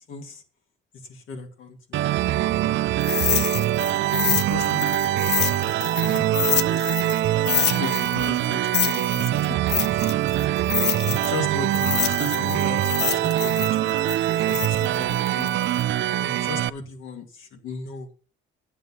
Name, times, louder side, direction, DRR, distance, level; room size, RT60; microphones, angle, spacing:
voice 1, 0.1-0.4 1.0-3.4 4.2-5.5 5.9-6.9 7.6-10.0 11.0-15.5 16.2-18.1, left 4 dB, 80° left, 3 dB, 2.4 m, -37 dB
sound 1, 1.9-16.7, right 13 dB, 70° right, 0.5 m, -23 dB
sound 2, 3.0-7.2 7.5-11.4 11.7-15.8, left 10 dB, 60° left, 0.6 m, -27 dB
9.7 x 7.5 x 5.7 m, 0.40 s
cardioid pair, 90°, 20 cm